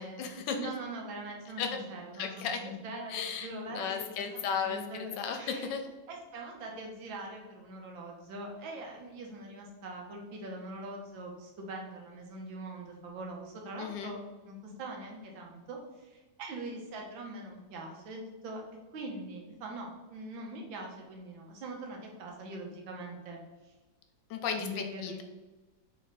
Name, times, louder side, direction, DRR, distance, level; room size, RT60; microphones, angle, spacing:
voice 1, 0.0-0.7 1.6-1.8 2.1-2.6 3.1-4.8 5.2-5.9 13.8-14.1 24.3-25.2, left 6 dB, 75° left, 6 dB, 1.2 m, -35 dB
voice 2, 0.6-4.2 4.6-5.7 6.1-14.2 14.5-18.6 18.9-23.4 23.6-23.7 24.6-25.2, right 2 dB, 90° right, 1 dB, 1.7 m, -42 dB
3.6 x 3.3 x 4.0 m, 1.1 s
omnidirectional pair, 2.1 m